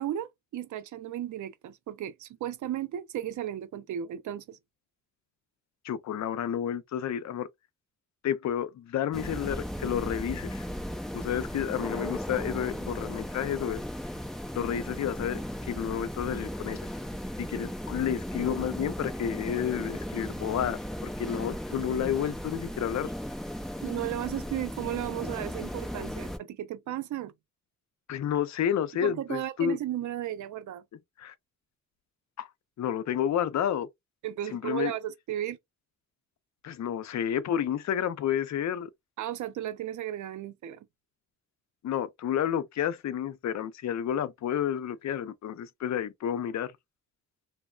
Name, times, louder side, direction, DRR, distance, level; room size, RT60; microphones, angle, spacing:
voice 1, 0.0-4.6 23.8-27.3 29.0-30.8 34.2-35.6 39.2-40.8, right 12 dB, 85° right, 0.5 m, -35 dB
voice 2, 5.8-7.5 8.2-10.7 11.1-13.8 14.5-16.8 17.4-23.1 28.1-29.8 31.2-31.3 32.4-32.5 32.8-33.9 34.5-34.9 36.6-38.9 41.8-46.7, left 9 dB, 70° left, 0.5 m, -30 dB
sound 1, 9.1-26.4, equal, ahead, 0.5 m, -36 dB
3.1 x 2.0 x 2.3 m
cardioid pair, 110°, 29 cm